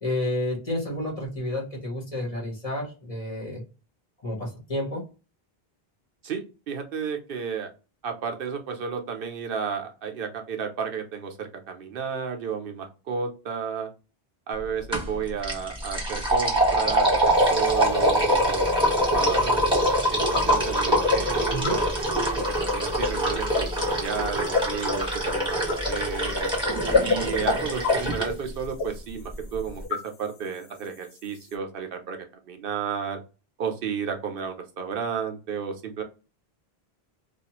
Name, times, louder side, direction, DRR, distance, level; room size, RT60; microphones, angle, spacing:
voice 1, 0.0-3.6 4.2-5.1 21.5-21.8, left 1 dB, 35° left, -1 dB, 1.0 m, -30 dB
voice 2, 6.2-7.7 8.0-13.9 14.5-19.7 20.1-26.5 27.0-33.2 33.6-36.0, right 6 dB, 65° right, 4 dB, 0.7 m, -32 dB
sound 1, 14.9-15.1 15.4-28.3, equal, 5° right, 1.0 m, -24 dB
sound 2, 17.3-31.5, left 4 dB, 75° left, 0.8 m, -32 dB
2.4 x 2.3 x 2.8 m, 0.32 s
omnidirectional pair, 1.0 m